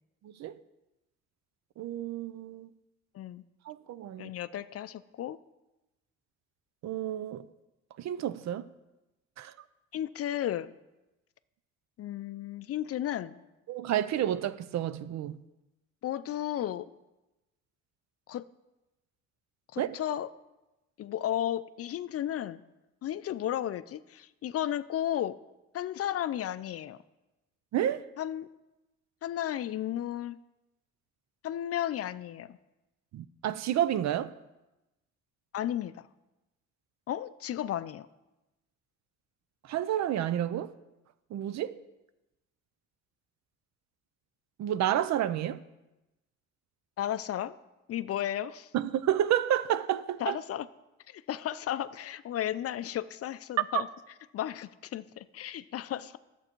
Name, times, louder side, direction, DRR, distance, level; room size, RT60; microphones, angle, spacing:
voice 1, 0.2-0.5 1.8-2.7 3.7-4.3 6.8-7.4 8.0-8.6 9.4-9.5 13.7-15.4 19.8-19.9 27.7-28.0 33.1-34.3 39.7-40.7 41.3-41.8 44.6-45.6 48.7-50.4 53.7-53.8, right 11 dB, 65° right, 0.5 m, -30 dB
voice 2, 4.2-5.4 9.9-10.7 12.0-13.4 16.0-16.9 18.3-18.4 19.7-20.3 21.0-22.6 23.0-25.4 25.7-27.0 28.2-28.5 29.2-30.4 31.4-32.6 35.5-36.1 37.1-38.1 47.0-47.6 47.9-48.7 50.2-50.7 51.1-53.9 54.3-56.2, left 11 dB, 50° left, 0.4 m, -34 dB
11.0 x 7.8 x 4.5 m
cardioid pair, 90°, 30 cm